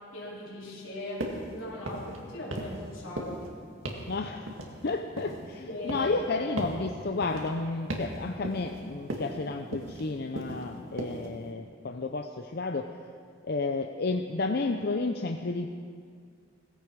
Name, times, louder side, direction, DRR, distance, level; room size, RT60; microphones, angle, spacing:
voice 1, 0.1-3.4 5.7-6.1, left 1 dB, 85° left, -4 dB, 4.1 m, -39 dB
sound 1, 1.2-1.5 1.8-2.2 2.5-2.9 3.2-3.5 3.9-4.1 4.5-5.5 5.9-6.2 6.6-6.8 7.2-7.5 7.9-8.2 8.4-8.8 9.1-9.4 9.7-10.1 10.4-10.7 11.0-11.3, right 1 dB, 90° right, 2.1 m, -36 dB
voice 2, 4.1-4.5 4.8-12.9 13.4-15.7, left 3 dB, 55° left, 5 dB, 0.6 m, -31 dB
18.0 x 15.5 x 4.7 m, 2.1 s
head